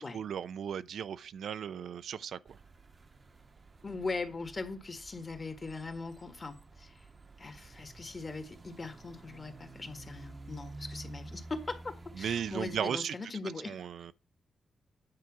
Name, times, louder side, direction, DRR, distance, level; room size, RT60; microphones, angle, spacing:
voice 1, 0.0-2.6 12.1-13.1 13.7-14.1, right 8 dB, 75° right, 0.5 m, -36 dB
sound 1, 2.5-12.8, right 2 dB, 30° right, 0.8 m, -51 dB
voice 2, 3.8-7.0 7.4-13.8, left 3 dB, 30° left, 1.6 m, -40 dB
9.6 x 4.8 x 6.1 m
wide cardioid pair, 135°, 0 cm